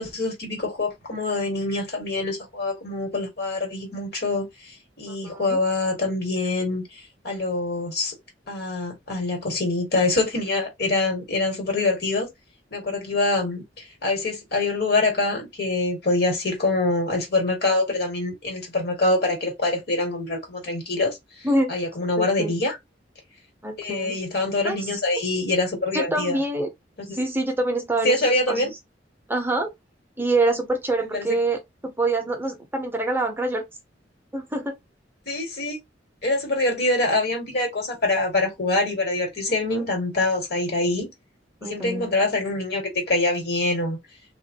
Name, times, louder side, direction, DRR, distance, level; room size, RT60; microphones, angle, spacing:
voice 1, 0.0-8.1 8.5-12.3 12.7-21.2 21.7-22.8 23.8-26.4 27.1-27.2 28.0-28.7 31.1-31.4 35.3-35.8 36.2-41.1 41.6-44.0, left 2 dB, 60° left, 1.9 m, -25 dB
voice 2, 5.1-5.6 21.4-21.8 22.2-22.5 23.6-24.2 24.6-24.8 25.9-26.7 27.1-28.7 29.3-29.7 30.2-31.6 31.8-33.6 34.3-34.7 39.6-39.8 41.6-42.1, right 2 dB, 10° right, 0.7 m, -25 dB
3.5 x 3.0 x 2.7 m
head